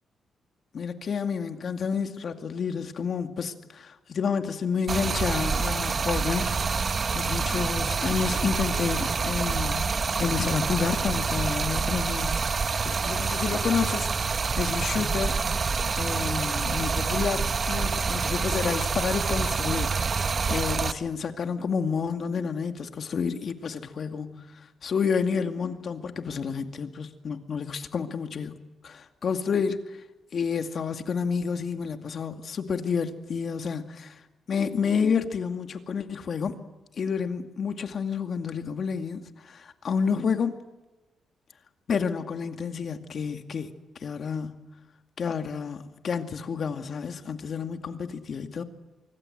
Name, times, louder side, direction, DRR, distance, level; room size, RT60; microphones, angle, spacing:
voice 1, 0.7-15.4 16.0-28.6 28.8-30.0 30.3-34.2 34.5-36.6 37.0-40.6 41.9-43.7 44.0-44.6 45.2-48.6, left 6 dB, 50° left, 2.3 m, -30 dB
Stream, 4.9-20.9, right 5 dB, 40° right, 1.1 m, -27 dB
25.0 x 24.5 x 7.9 m
cardioid pair, 110°, 0 cm